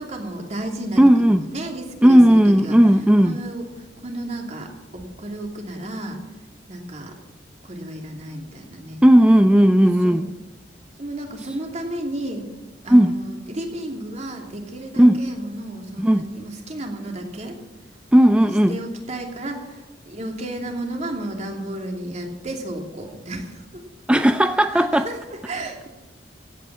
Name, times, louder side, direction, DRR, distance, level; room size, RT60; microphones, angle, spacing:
voice 1, 0.0-1.0 1.3-2.8 3.2-6.2 6.7-7.1 7.6-9.0 10.0-10.3 11.0-12.5 12.8-17.6 18.4-23.8 24.7-25.9, right 1 dB, 40° right, 2 dB, 2.8 m, -33 dB
voice 2, 1.0-1.4 2.0-3.4 9.0-10.3 12.9-13.2 15.0-15.2 16.0-16.3 18.1-18.8 24.1-25.1, equal, 5° right, 9 dB, 0.4 m, -14 dB
15.5 x 9.0 x 7.5 m, 1.2 s
head